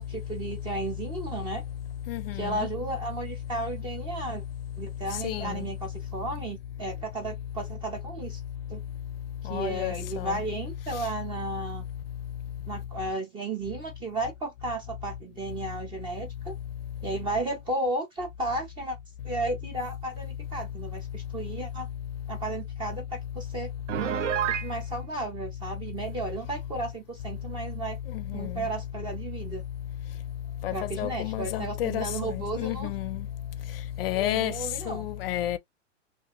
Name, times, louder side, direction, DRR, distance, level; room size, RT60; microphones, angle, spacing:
voice 1, 0.0-1.6 2.4-4.4 4.8-8.4 8.7-8.8 9.4-11.8 12.7-16.6 17.0-19.0 19.2-21.9 22.3-23.7 24.5-28.0 28.3-29.6 30.7-32.9 34.1-35.1, right 2 dB, 15° right, 0.4 m, -34 dB
voice 2, 2.1-2.6 5.2-5.6 9.5-10.4 28.1-28.5 30.6-33.2 34.0-34.5 34.9-35.6, left 12 dB, 50° left, 0.4 m, -31 dB
Piano, 23.9-24.7, right 10 dB, 70° right, 0.5 m, -28 dB
2.5 x 2.3 x 2.9 m
hypercardioid pair, 115°, 38 cm